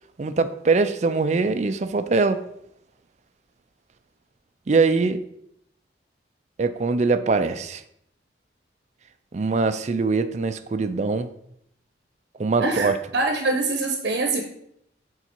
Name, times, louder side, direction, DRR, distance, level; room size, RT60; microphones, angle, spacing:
voice 1, 0.2-2.4 4.7-5.2 6.6-7.8 9.3-11.3 12.4-13.0, right 4 dB, 40° right, 10 dB, 0.4 m, -22 dB
voice 2, 12.6-14.4, right 2 dB, 65° right, 3 dB, 0.8 m, -24 dB
7.1 x 3.9 x 4.4 m, 0.74 s
head